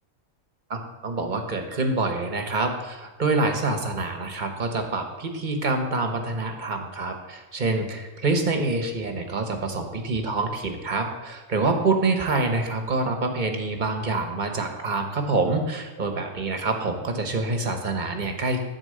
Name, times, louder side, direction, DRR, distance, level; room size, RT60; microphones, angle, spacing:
voice 1, 0.7-18.6, right 3 dB, 40° right, 5 dB, 1.1 m, -26 dB
9.7 x 4.5 x 7.7 m, 1.2 s
omnidirectional pair, 1.3 m